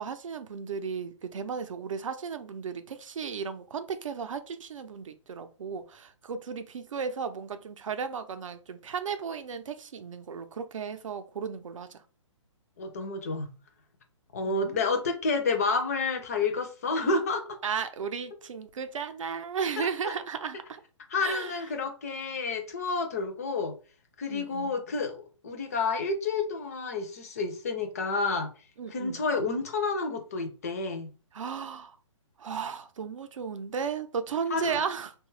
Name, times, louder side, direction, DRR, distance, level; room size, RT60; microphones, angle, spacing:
voice 1, 0.0-12.0 14.5-14.9 17.6-20.8 21.2-21.6 24.3-24.7 28.8-29.2 31.3-32.0 32.4-35.1, right 6 dB, 75° right, 0.5 m, -35 dB
voice 2, 12.8-13.5 14.3-17.4 19.8-20.1 21.1-23.7 24.2-25.2 25.4-28.5 28.9-31.1 34.5-34.8, left 3 dB, 30° left, 0.4 m, -30 dB
2.8 x 2.2 x 3.1 m
hypercardioid pair, 165°, 17 cm